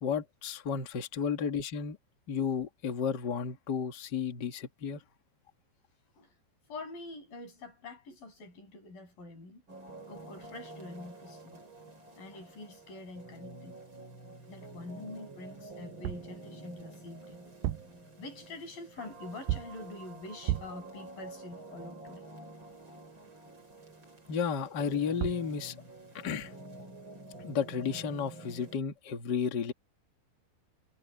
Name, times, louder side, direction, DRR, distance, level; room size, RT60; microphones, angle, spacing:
voice 1, 0.0-2.0 2.3-5.0 24.3-25.7 26.1-26.5 27.4-29.7, left 6 dB, 85° left, 0.9 m, -33 dB
voice 2, 6.7-9.6 10.1-11.6 12.2-13.8 14.5-17.5 18.2-22.2, left 2 dB, 50° left, 9.0 m, -46 dB
sound 1, 9.7-28.8, right 2 dB, 25° right, 6.7 m, -49 dB
sound 2, 16.0-16.4 17.5-18.0 19.5-19.9 20.5-20.9 24.9-25.0 25.2-25.5, right 13 dB, 90° right, 2.1 m, -34 dB
omnidirectional pair, 5.2 m